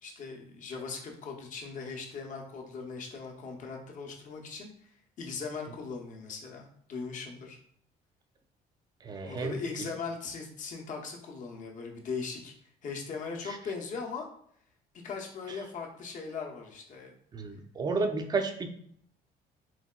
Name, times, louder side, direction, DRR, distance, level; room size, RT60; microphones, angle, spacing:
voice 1, 0.0-4.7 5.2-7.6 9.2-12.5 12.8-14.3 15.0-17.1, left 5 dB, 50° left, 1 dB, 0.7 m, -39 dB
voice 2, 9.0-9.6 17.3-18.7, right 4 dB, 25° right, 5 dB, 0.4 m, -31 dB
4.0 x 2.2 x 2.3 m, 0.65 s
cardioid pair, 110°, 17 cm